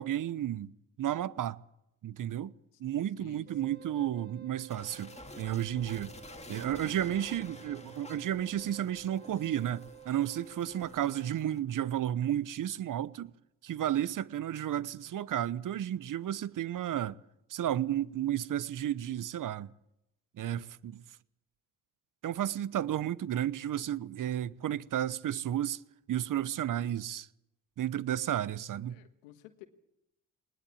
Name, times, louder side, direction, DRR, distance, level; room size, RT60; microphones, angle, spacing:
voice 1, 0.0-1.6 2.0-2.5 2.8-6.1 6.5-13.3 13.6-17.2 17.5-19.7 20.4-21.0 22.2-25.8 26.1-27.3 27.8-29.0, right 11 dB, 55° right, 1.0 m, -32 dB
voice 2, 3.2-3.8 6.9-7.2 28.9-29.7, left 14 dB, 90° left, 1.5 m, -53 dB
Wind instrument woodwind instrument, 3.5-11.3, right 8 dB, 25° right, 2.0 m, -53 dB
sound 1, 4.7-11.6, left 2 dB, 15° left, 2.2 m, -51 dB
20.0 x 19.5 x 8.6 m
hypercardioid pair, 50°, 38 cm